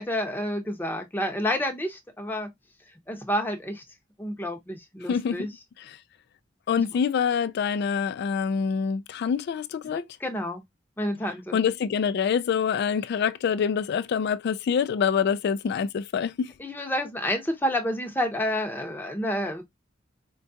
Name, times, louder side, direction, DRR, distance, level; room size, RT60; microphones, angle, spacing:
voice 1, 0.0-2.5 3.1-3.8 4.2-5.5 6.7-6.9 9.8-10.6 11.0-11.6 16.6-19.6, equal, 10° left, 0.7 m, -29 dB
voice 2, 5.1-5.5 6.7-10.1 11.5-16.5, left 7 dB, 60° left, 0.3 m, -26 dB
4.5 x 2.3 x 2.6 m
head